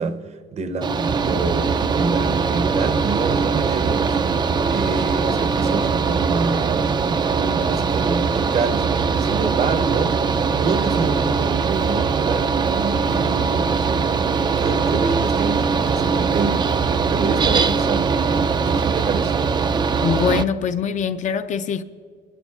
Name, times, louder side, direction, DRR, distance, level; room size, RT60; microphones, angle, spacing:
voice 1, 0.0-10.2 10.6-13.8 14.6-16.7 17.0-19.4, right 4 dB, 40° right, 0.7 m, -27 dB
Mechanical fan, 0.8-20.4, right 5 dB, 25° right, 0.3 m, -21 dB
voice 2, 20.0-21.8, left 7 dB, 45° left, 0.5 m, -23 dB
25.5 x 12.0 x 2.4 m
cardioid pair, 110°, 17 cm